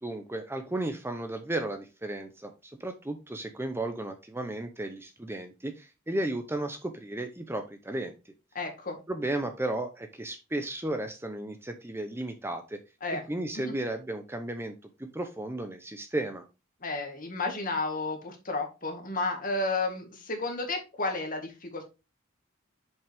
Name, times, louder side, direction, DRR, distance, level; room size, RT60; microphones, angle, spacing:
voice 1, 0.0-8.2 9.1-12.8 13.3-14.7 15.0-16.4, right 1 dB, 10° right, 6 dB, 0.7 m, -34 dB
voice 2, 8.6-9.0 13.0-13.2 13.6-13.7 16.8-21.8, left 3 dB, 45° left, 4 dB, 1.9 m, -32 dB
7.1 x 5.4 x 3.5 m, 0.28 s
head